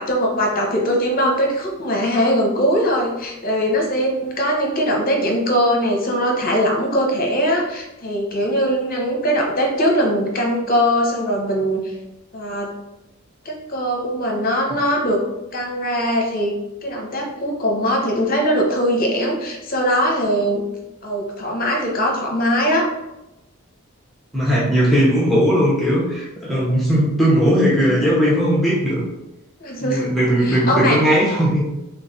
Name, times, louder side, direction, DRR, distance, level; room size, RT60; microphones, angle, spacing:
voice 1, 0.0-11.9 12.3-12.7 13.4-15.2 15.5-16.5 16.8-20.7 21.0-22.8 29.6-30.1 30.4-31.0, equal, 40° left, 1 dB, 0.8 m, -21 dB
voice 2, 24.3-29.0 29.8-31.7, equal, ahead, -6 dB, 0.9 m, -18 dB
3.3 x 3.2 x 4.1 m, 0.93 s
head